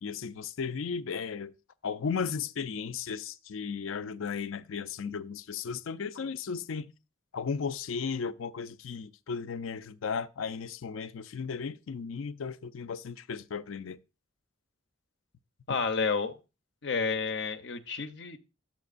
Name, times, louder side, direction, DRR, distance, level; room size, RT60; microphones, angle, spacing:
voice 1, 0.0-1.5 1.8-6.9 7.3-14.0, left 6 dB, 85° left, 0.4 m, -35 dB
voice 2, 15.7-16.3 16.8-18.4, left 5 dB, 60° left, 0.7 m, -30 dB
10.5 x 7.4 x 2.5 m
head